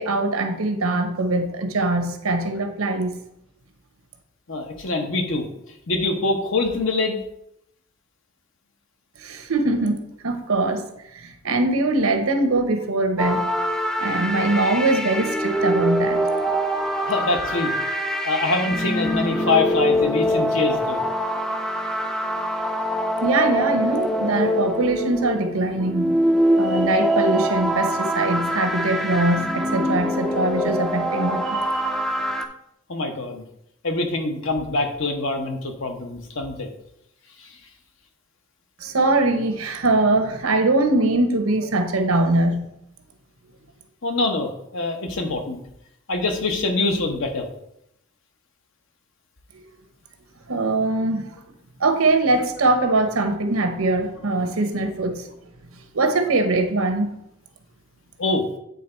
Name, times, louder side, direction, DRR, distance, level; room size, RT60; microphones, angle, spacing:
voice 1, 0.0-3.1 9.2-10.0 10.2-10.8 11.1-13.5 14.0-16.2 23.2-26.2 26.6-31.9 38.8-42.7 49.5-49.6 50.5-51.4 51.8-55.2 55.9-57.1, right 2 dB, 85° right, 7 dB, 0.9 m, -22 dB
voice 2, 4.5-5.5 5.9-7.2 17.0-17.7 18.2-21.0 32.9-33.4 33.8-36.7 37.4-37.5 44.0-45.6 46.1-47.5 58.2-58.5, left 2 dB, 70° left, 4 dB, 1.0 m, -24 dB
sound 1, 13.2-32.4, equal, 5° left, 0.4 m, -24 dB
8.3 x 3.8 x 4.4 m, 0.78 s
head